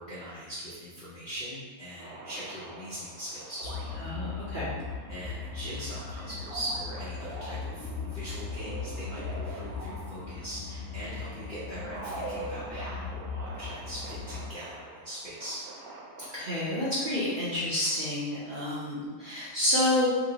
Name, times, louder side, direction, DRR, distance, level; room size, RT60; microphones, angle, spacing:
voice 1, 0.0-4.0 5.1-15.6, right 1 dB, 55° left, -9 dB, 0.5 m, -41 dB
sound 1, 2.0-17.5, right 2 dB, 80° right, 1.1 m, -45 dB
sound 2, 3.6-14.5, left 5 dB, 75° left, 1.0 m, -39 dB
voice 2, 4.0-4.7 16.3-20.1, left 1 dB, 50° right, -9 dB, 0.6 m, -29 dB
2.8 x 2.8 x 2.7 m, 1.4 s
omnidirectional pair, 1.5 m